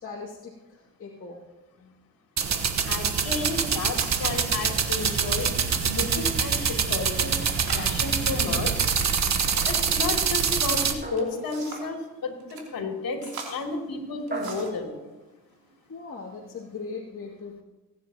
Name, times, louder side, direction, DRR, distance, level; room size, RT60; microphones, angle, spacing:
voice 1, 0.0-1.4 15.9-17.6, left 4 dB, 35° left, -5 dB, 2.5 m, -39 dB
sound 1, 2.4-10.9, right 6 dB, 45° right, 1.2 m, -25 dB
voice 2, 2.8-5.5 5.8-7.4 7.7-8.8 9.6-13.2 13.5-14.9, left 3 dB, 55° left, 1 dB, 3.1 m, -32 dB
sound 2, 3.7-4.5 4.7-5.2 5.7-6.2 6.5-6.6 7.3-10.0 10.9-12.0 12.4-12.7 13.2-14.8 15.6-15.8 16.3-16.8, right 4 dB, 60° right, 3.1 m, -42 dB
sound 3, 11.0-12.0 14.3-15.1, right 2 dB, 25° right, 2.2 m, -38 dB
19.5 x 9.9 x 2.9 m, 1.1 s
supercardioid pair, 60°, 40 cm